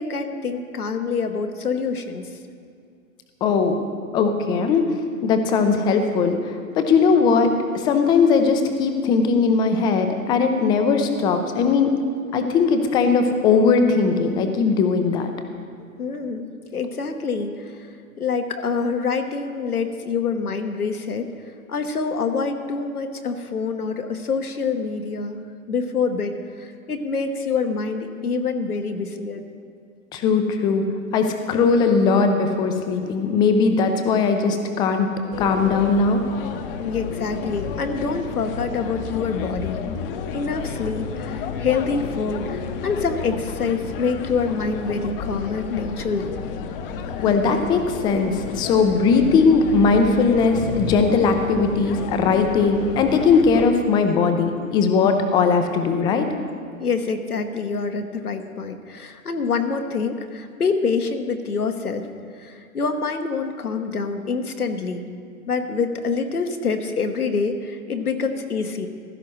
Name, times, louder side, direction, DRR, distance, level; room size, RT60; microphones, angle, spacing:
voice 1, 0.0-2.3 15.8-17.9 18.2-21.3 21.7-25.4 25.7-29.4 36.8-39.8 40.3-46.3 56.8-62.1 62.4-65.0 65.5-68.9, left 5 dB, 90° left, 6 dB, 1.2 m, -26 dB
voice 2, 3.4-3.8 4.1-4.8 5.2-11.9 12.3-15.3 30.1-30.8 31.1-35.1 35.4-36.2 47.2-56.3, left 5 dB, 10° left, 6 dB, 0.4 m, -19 dB
sound 1, 35.3-53.7, left 6 dB, 40° left, 0.8 m, -31 dB
15.5 x 13.0 x 3.1 m, 2.3 s
figure-of-eight pair, 115°, 43 cm